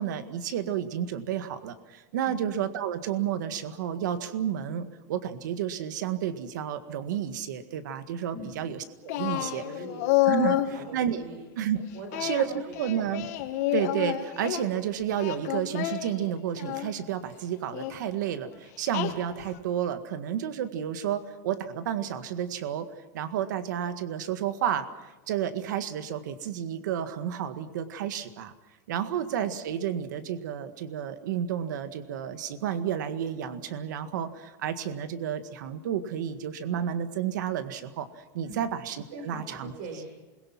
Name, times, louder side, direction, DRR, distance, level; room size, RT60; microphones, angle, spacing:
voice 1, 0.0-9.6 10.3-11.2 11.6-11.9 12.2-12.5 12.8-13.3 13.7-22.9 23.1-28.5 28.9-38.1 38.3-39.7, right 9 dB, 80° right, 10 dB, 1.8 m, -31 dB
Singing, 9.1-10.7 12.1-14.6 15.1-16.9 17.7-18.0 18.9-19.6, left 15 dB, 55° left, 2.5 m, -29 dB
voice 2, 9.3-10.0 10.4-11.4 11.9-12.8 29.1-29.2 38.4-38.7 39.1-40.1, right 2 dB, 50° right, 3 dB, 5.1 m, -43 dB
28.5 x 22.0 x 6.0 m, 1.2 s
supercardioid pair, 170°, 10 cm